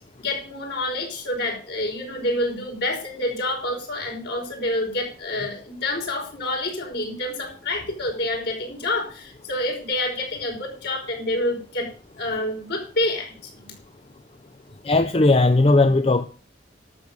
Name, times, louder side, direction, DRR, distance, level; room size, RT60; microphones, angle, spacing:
voice 1, 0.2-13.3 13.6-13.7, left 1 dB, 60° left, 0 dB, 5.4 m, -28 dB
voice 2, 14.8-16.3, left 2 dB, 30° left, 11 dB, 0.5 m, -17 dB
12.0 x 7.2 x 6.8 m, 0.37 s
head